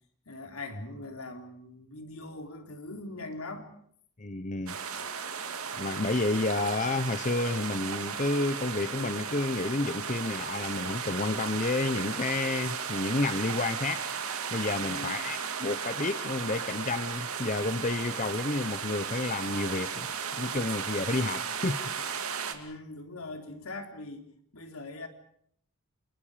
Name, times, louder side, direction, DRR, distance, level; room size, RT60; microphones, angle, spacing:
voice 1, 0.3-3.7 14.8-15.3 22.5-25.1, left 2 dB, 75° left, 4 dB, 3.8 m, -41 dB
voice 2, 4.2-4.8 5.8-20.1 20.4-21.8 22.0-22.2, left 2 dB, 35° left, 10 dB, 0.9 m, -30 dB
sound 1, 4.7-22.5, right 6 dB, 75° right, 2.5 m, -35 dB
29.0 x 27.0 x 5.1 m, 0.64 s
head